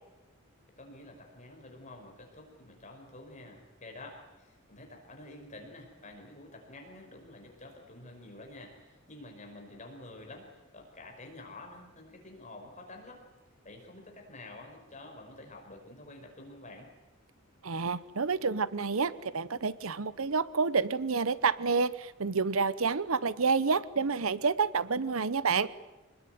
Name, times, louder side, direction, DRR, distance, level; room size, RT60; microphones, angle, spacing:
voice 1, 0.8-13.2 13.6-16.9, left 2 dB, 35° left, 2 dB, 5.4 m, -49 dB
voice 2, 17.6-25.7, right 5 dB, 85° right, 17 dB, 0.9 m, -29 dB
25.5 x 20.0 x 9.4 m, 1.1 s
head